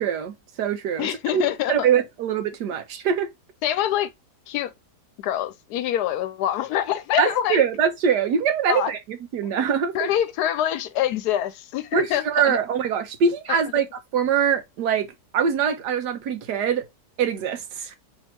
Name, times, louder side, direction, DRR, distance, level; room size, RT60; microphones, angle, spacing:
voice 1, 0.0-1.1 1.3-1.4 1.7-3.3 7.2-10.1 11.9-13.8 14.1-15.1 15.3-16.8 17.2-18.0, right 7 dB, 80° right, 1.3 m, -23 dB
voice 2, 1.0-1.9 3.6-4.1 4.5-4.7 5.2-7.6 8.7-8.9 9.9-12.6, left 11 dB, 75° left, 1.1 m, -25 dB
3.3 x 2.8 x 4.3 m
omnidirectional pair, 1.8 m